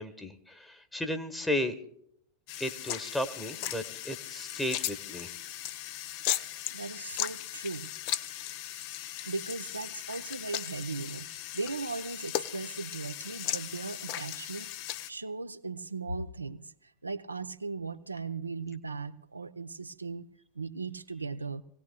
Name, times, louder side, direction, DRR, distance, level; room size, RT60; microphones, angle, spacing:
voice 1, 0.0-1.8 2.6-5.3, left 1 dB, 5° left, 7 dB, 1.2 m, -34 dB
sound 1, 2.5-15.1, left 13 dB, 45° left, 0.6 m, -37 dB
voice 2, 6.7-7.9 9.2-14.7 15.1-20.3 20.5-21.6, right 4 dB, 80° right, 10 dB, 0.6 m, -38 dB
26.5 x 17.5 x 2.2 m, 0.76 s
figure-of-eight pair, 90°, 0 cm